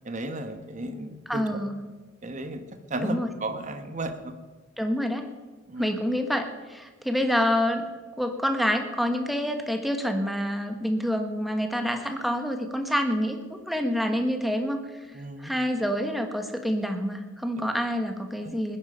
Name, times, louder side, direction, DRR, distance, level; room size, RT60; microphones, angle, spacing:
voice 1, 0.0-1.4 2.2-2.6 2.9-4.3 5.7-5.9 15.1-15.5 17.6-17.7 18.4-18.5, right 2 dB, 40° right, 8 dB, 1.2 m, -34 dB
voice 2, 1.3-1.8 3.0-3.3 4.8-5.3 5.8-7.8 8.2-15.0 15.4-18.8, equal, ahead, 5 dB, 1.3 m, -27 dB
20.0 x 10.0 x 5.6 m, 1.3 s
head